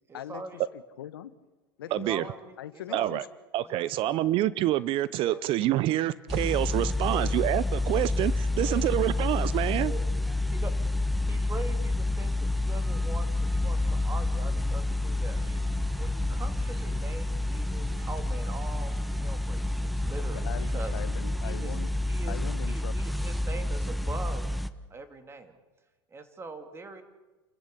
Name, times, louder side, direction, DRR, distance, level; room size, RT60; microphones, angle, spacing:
voice 1, 0.1-0.6 1.9-3.3 3.6-4.3 5.2-5.4 7.0-7.4 8.6-8.9 9.8-10.1 10.5-10.7 11.3-15.6 16.0-18.9 19.2-21.0 21.4-21.7 22.1-22.4 22.6-24.4 24.9-25.6 26.1-27.0, right 3 dB, 20° right, 8 dB, 2.8 m, -42 dB
voice 2, 0.7-1.4 1.8-2.3 2.6-3.2 20.2-21.9 22.3-23.2, left 11 dB, 90° left, 14 dB, 1.1 m, -41 dB
voice 3, 1.9-2.2 2.9-3.2 3.5-9.9, right 14 dB, 50° right, 18 dB, 0.7 m, -27 dB
sound 1, 6.3-24.7, left 2 dB, ahead, 1.0 m, -29 dB
sound 2, 11.4-21.9, right 6 dB, 85° right, 3.1 m, -56 dB
29.0 x 14.0 x 8.4 m, 1.2 s
hypercardioid pair, 105°, 12 cm